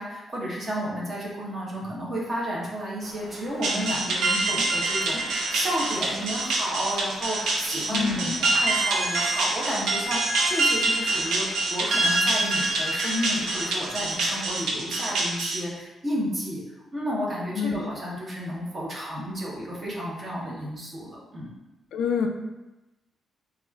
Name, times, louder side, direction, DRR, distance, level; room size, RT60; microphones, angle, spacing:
voice 1, 0.0-16.6 16.9-21.5, equal, 25° right, -4 dB, 0.7 m, -32 dB
sound 1, 3.0-14.5, left 1 dB, 5° left, 0.8 m, -46 dB
sound 2, 3.6-15.6, right 2 dB, 80° right, 0.5 m, -25 dB
voice 2, 7.9-8.4 17.6-17.9 21.9-22.3, left 6 dB, 75° left, 3 dB, 0.3 m, -27 dB
4.6 x 2.3 x 2.2 m, 1.0 s
wide cardioid pair, 180°, 0 cm